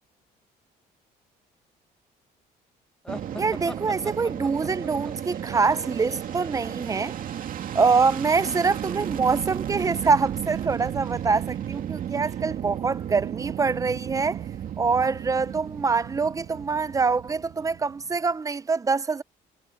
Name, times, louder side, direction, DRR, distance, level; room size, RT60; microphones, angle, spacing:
sound 1, 3.1-6.7, left 1 dB, 5° left, 1.6 m, -42 dB
Fixed-wing aircraft airplane, 3.1-18.2, right 10 dB, 55° right, 2.4 m, -34 dB
voice 1, 3.4-7.1 7.7-14.4 14.8-19.2, right 4 dB, 20° right, 0.7 m, -25 dB
cardioid pair, 110°, 17 cm